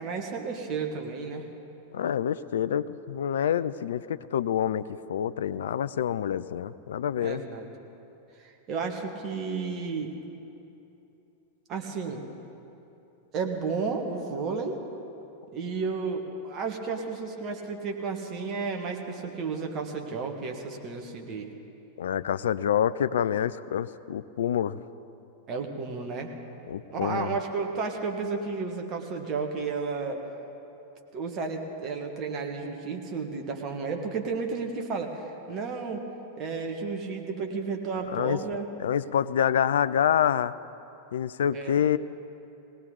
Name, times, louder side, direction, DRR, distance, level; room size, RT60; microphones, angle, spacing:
voice 1, 0.0-1.5 7.2-7.7 8.4-10.1 11.7-12.2 13.3-14.8 15.5-21.5 25.5-26.3 26.9-30.2 31.1-36.1 36.4-38.7 41.5-41.8, right 4 dB, 35° right, 2 dB, 1.8 m, -32 dB
voice 2, 1.9-7.4 22.0-24.8 26.7-27.3 38.1-38.4 38.8-40.5 41.1-42.0, left 9 dB, 60° left, 15 dB, 0.4 m, -27 dB
19.5 x 18.0 x 4.0 m, 2.9 s
figure-of-eight pair, 90°, 0 cm